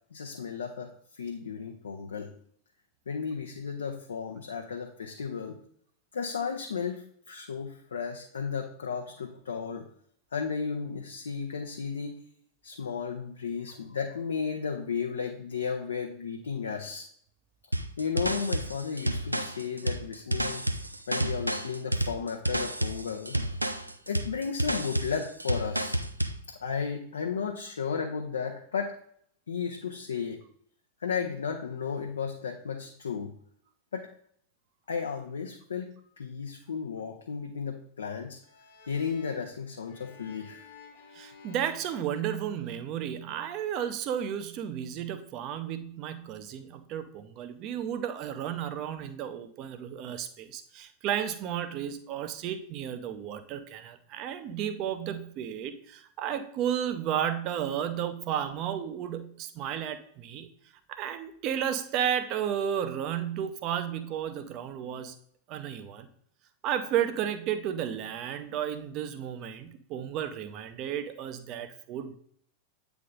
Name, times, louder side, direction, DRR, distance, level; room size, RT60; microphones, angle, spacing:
voice 1, 0.1-2.3 3.1-5.6 6.1-9.8 10.3-12.2 12.6-17.1 18.0-20.7 21.1-23.4 24.1-26.0 26.5-29.0 29.5-30.4 31.0-33.4 33.9-34.1 34.9-38.4 38.9-40.6, left 6 dB, 70° left, 2 dB, 0.6 m, -34 dB
sound 1, 17.7-26.4, right 1 dB, 85° right, 0.4 m, -30 dB
sound 2, 38.4-43.0, left 5 dB, 50° left, 1.3 m, -53 dB
voice 2, 41.1-60.5 60.9-65.1 65.5-66.1 66.6-72.2, right 9 dB, 40° right, 10 dB, 0.6 m, -33 dB
8.4 x 3.5 x 3.7 m, 0.64 s
figure-of-eight pair, 90°, 0 cm